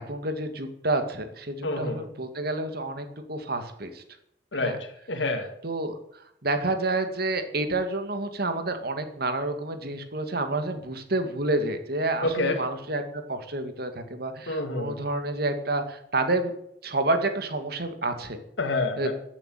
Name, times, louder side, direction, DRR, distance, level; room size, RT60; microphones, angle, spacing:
voice 1, 0.0-4.0 4.6-4.8 5.6-6.0 6.4-13.0 13.3-16.5 16.8-18.4 19.0-19.1, right 2 dB, 60° right, 7 dB, 2.2 m, -29 dB
voice 2, 1.6-2.1 4.5-5.5 12.2-12.6 14.5-15.0 18.6-19.1, left 2 dB, 85° left, 3 dB, 2.1 m, -28 dB
14.5 x 8.7 x 9.2 m, 0.74 s
head